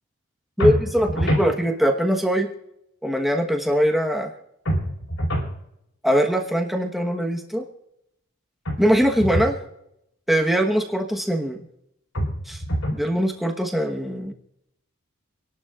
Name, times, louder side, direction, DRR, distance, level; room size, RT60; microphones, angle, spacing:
sound 1, 0.6-1.5 4.7-5.5 8.6-9.5 12.1-13.1, equal, 75° left, 4.8 m, -25 dB
voice 1, 0.6-2.5 3.0-4.3 6.0-7.6 8.8-9.5 10.3-11.6 12.5-12.6 12.9-14.3, equal, ahead, 2 dB, 1.2 m, -22 dB
27.0 x 11.5 x 2.5 m, 0.79 s
head